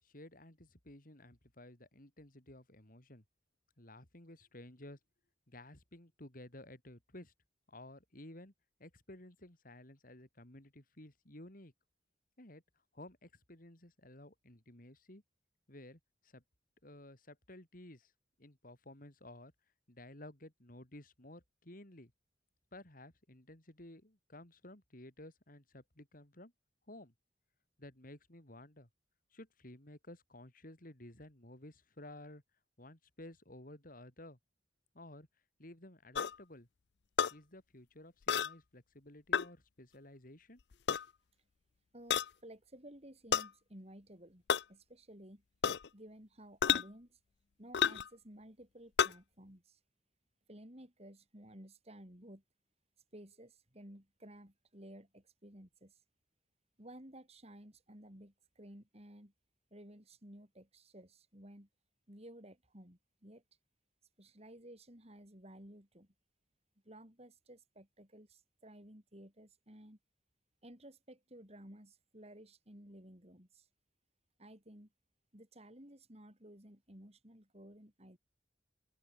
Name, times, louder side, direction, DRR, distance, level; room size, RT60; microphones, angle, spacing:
voice 1, 0.0-3.2 3.8-5.0 5.5-7.3 7.7-8.5 8.8-11.7 12.4-12.6 12.9-15.2 15.7-16.4 16.8-18.1 18.4-19.5 19.9-22.1 22.7-26.5 26.9-27.1 27.8-28.9 29.3-32.4 32.8-34.4 34.9-35.3 35.6-36.7 37.3-40.6, left 1 dB, 50° left, 4.1 m, -54 dB
sound 1, 36.1-36.3 37.2-37.3 38.3-38.5 39.3-39.5 40.7-41.0 42.1-42.3 43.3-43.5 44.5-44.6 45.6-45.9 46.6-46.8 47.7-48.1 49.0-49.1, left 8 dB, 65° left, 0.5 m, -30 dB
voice 2, 41.9-44.4 44.7-45.4 45.9-47.2 47.6-49.8 50.5-52.4 53.1-56.0 56.8-59.3 59.7-61.7 62.1-63.4 64.2-66.1 66.8-70.0 70.6-73.7 74.4-74.9 75.3-78.2, right 1 dB, 35° right, 7.2 m, -55 dB
open air
head